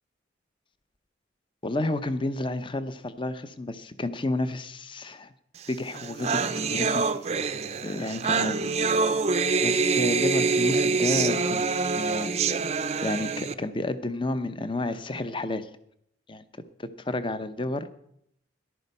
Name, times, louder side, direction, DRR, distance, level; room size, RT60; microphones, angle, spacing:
voice 1, 1.6-5.3 5.7-7.1 7.8-8.7 9.0-9.2 9.6-12.6 13.0-15.7 16.3-16.4 16.8-17.9, left 2 dB, 25° left, 12 dB, 0.7 m, -31 dB
sound 1, 5.7-5.8 5.9-13.5, right 4 dB, 35° right, 0.5 m, -25 dB
14.0 x 11.5 x 5.4 m, 0.72 s
head